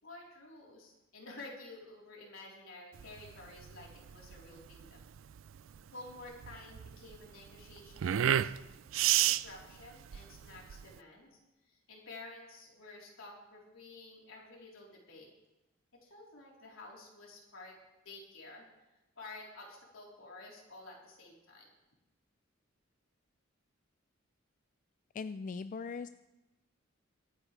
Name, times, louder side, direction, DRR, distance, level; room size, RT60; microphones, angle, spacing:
voice 1, 0.0-5.0 5.9-8.7 9.2-11.4 11.7-15.3 15.9-17.7 18.0-18.7 19.2-21.7, left 2 dB, 80° left, -3 dB, 3.7 m, -51 dB
sound 1, 3.0-11.0, right 11 dB, 70° right, 0.3 m, -32 dB
voice 2, 25.1-26.1, left 5 dB, 40° left, 11 dB, 0.3 m, -39 dB
23.5 x 9.5 x 3.3 m, 1.0 s
head